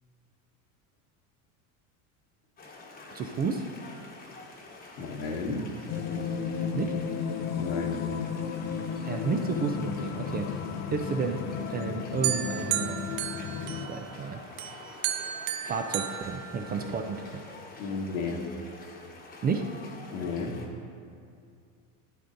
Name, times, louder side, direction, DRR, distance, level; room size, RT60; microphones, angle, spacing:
sound 1, 2.6-20.7, left 3 dB, 20° left, 1.1 m, -48 dB
voice 1, 3.1-3.7 6.7-7.0 9.0-10.6 10.9-11.4 11.7-13.0 13.9-14.4 15.6-17.4 19.4-19.7, right 5 dB, 25° right, 4 dB, 0.3 m, -31 dB
voice 2, 5.0-5.7 7.6-8.0 17.8-18.4 20.1-20.6, left 4 dB, 75° left, 1 dB, 1.3 m, -32 dB
sound 2, 5.9-13.9, left 6 dB, 40° left, 0.5 m, -33 dB
sound 3, 12.2-14.2 14.6-17.1, right 11 dB, 75° right, 0.7 m, -33 dB
11.5 x 8.8 x 2.5 m, 2.4 s
supercardioid pair, 110°, 43 cm